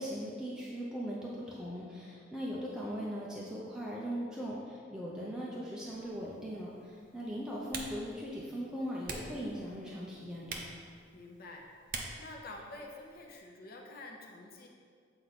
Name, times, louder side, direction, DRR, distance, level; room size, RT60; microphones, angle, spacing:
voice 1, 0.0-10.6, equal, 5° right, -6 dB, 0.6 m, -39 dB
Typing, 5.9-13.4, right 3 dB, 50° right, 0.8 m, -47 dB
voice 2, 11.1-14.7, left 2 dB, 55° left, 0 dB, 0.7 m, -49 dB
7.8 x 4.4 x 4.1 m, 2.2 s
head